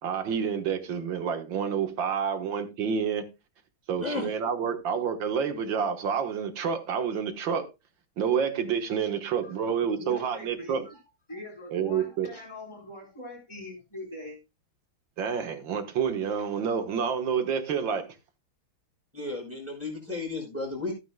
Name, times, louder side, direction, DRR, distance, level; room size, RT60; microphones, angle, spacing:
voice 1, 0.0-3.3 3.9-7.6 8.2-10.8 11.7-12.3 15.2-18.1, right 7 dB, 65° right, 2.0 m, -28 dB
voice 2, 9.9-11.0 11.3-14.4, left 1 dB, 15° left, 4.3 m, -42 dB
voice 3, 19.1-20.9, left 3 dB, 5° right, 5.7 m, -33 dB
15.5 x 9.4 x 2.2 m
omnidirectional pair, 2.2 m